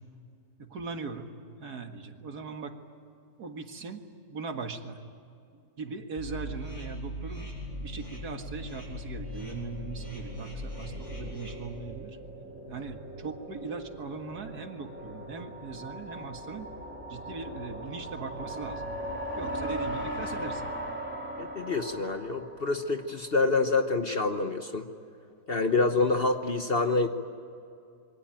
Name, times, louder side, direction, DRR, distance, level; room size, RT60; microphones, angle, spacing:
voice 1, 0.6-1.3 1.6-2.8 3.4-4.0 4.3-5.0 5.8-7.5 7.8-12.2 12.7-16.7 17.1-18.9 19.4-20.7, right 4 dB, 85° right, 5 dB, 2.3 m, -39 dB
sound 1, 6.2-11.5, equal, 55° left, 8.5 m, -39 dB
sound 2, 7.9-23.1, right 1 dB, 5° right, 2.8 m, -40 dB
voice 2, 21.4-24.9 25.5-27.1, left 3 dB, 40° left, 6 dB, 1.2 m, -27 dB
27.0 x 23.5 x 9.0 m, 2.5 s
omnidirectional pair, 1.6 m